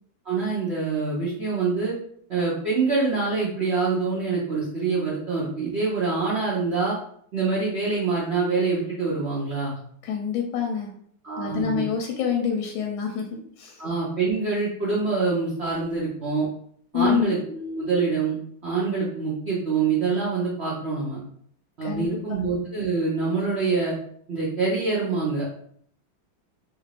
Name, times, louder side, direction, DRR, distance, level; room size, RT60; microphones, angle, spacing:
voice 1, 0.2-2.0 2.3-7.0 7.3-9.8 11.2-11.7 13.8-16.5 16.9-18.4 18.6-21.2 21.8-23.9 24.3-25.5, right 4 dB, 85° right, -7 dB, 0.5 m, -25 dB
voice 2, 10.0-10.9 11.4-13.8 16.9-17.3 21.8-22.4, left 7 dB, 80° left, 2 dB, 1.3 m, -27 dB
3.2 x 2.5 x 3.2 m, 0.64 s
omnidirectional pair, 2.2 m